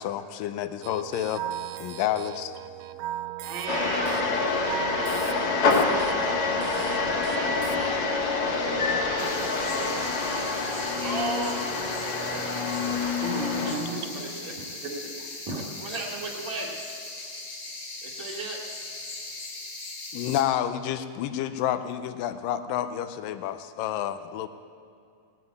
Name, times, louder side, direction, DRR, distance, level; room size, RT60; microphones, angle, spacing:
voice 1, 0.0-1.4 1.8-2.5 20.1-24.5, left 11 dB, 90° left, 11 dB, 2.3 m, -29 dB
sound 1, 0.8-7.9, right 12 dB, 85° right, 2.3 m, -37 dB
voice 2, 3.4-4.3 10.3-10.5 13.2-14.2 14.8-15.1 15.5-15.9, right 3 dB, 70° right, -3 dB, 3.2 m, -34 dB
sound 2, 3.7-13.7, left 3 dB, 50° left, 2.2 m, -26 dB
voice 3, 4.5-10.0 10.6-11.6 12.0-12.9 13.5-13.7 14.2-14.8 15.8-16.8 18.0-18.6, right 3 dB, 10° left, -3 dB, 1.2 m, -38 dB
sound 3, 9.2-20.4, left 2 dB, 35° left, 2.2 m, -39 dB
19.0 x 7.5 x 9.4 m, 2.4 s
omnidirectional pair, 3.9 m